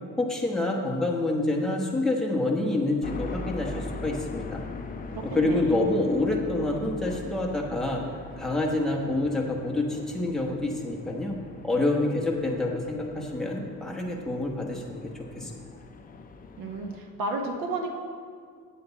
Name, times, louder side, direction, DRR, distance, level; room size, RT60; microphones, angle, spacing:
voice 1, 0.2-4.6 5.2-8.0 8.4-11.4 11.6-15.5, left 2 dB, ahead, -2 dB, 1.1 m, -27 dB
sound 1, 3.0-17.0, left 3 dB, 25° left, 0.5 m, -41 dB
voice 2, 5.1-5.8 16.6-17.9, right 2 dB, 90° right, 3 dB, 1.2 m, -32 dB
8.3 x 7.7 x 4.0 m, 2.1 s
cardioid pair, 135°, 33 cm